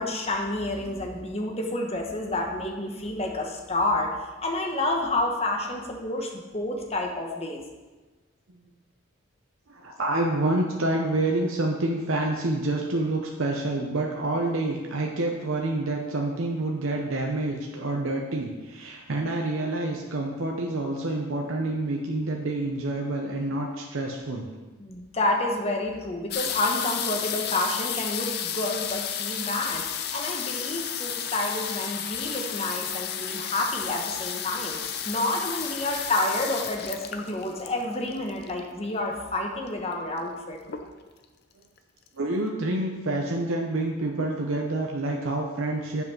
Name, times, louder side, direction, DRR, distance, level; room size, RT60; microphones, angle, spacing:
voice 1, 0.0-4.1 4.4-7.6 24.8-34.8 35.0-40.6, left 2 dB, 30° left, 1 dB, 1.0 m, -29 dB
voice 2, 9.7-24.5 42.2-46.0, right 2 dB, 80° right, 0 dB, 0.8 m, -28 dB
sound 1, 26.3-38.8 39.7-39.8 40.0-40.4 40.7-41.2 41.8-41.9 42.1-42.2, left 8 dB, 50° left, 0.6 m, -32 dB
7.4 x 5.5 x 6.1 m, 1.3 s
head